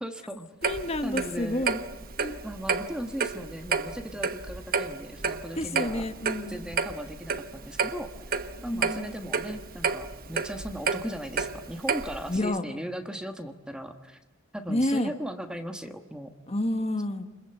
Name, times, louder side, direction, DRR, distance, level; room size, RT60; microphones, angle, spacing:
voice 1, 0.0-0.5 1.0-1.7 2.4-6.0 6.5-14.2 14.5-16.3, equal, 5° right, 6 dB, 1.3 m, -37 dB
voice 2, 0.6-1.8 2.2-2.4 5.5-6.7 8.6-9.1 12.3-12.6 14.7-15.1 16.5-17.2, left 1 dB, 30° left, 8 dB, 1.5 m, -29 dB
Clock, 0.6-12.4, right 5 dB, 45° right, 1.2 m, -31 dB
29.5 x 22.0 x 8.0 m, 1.1 s
head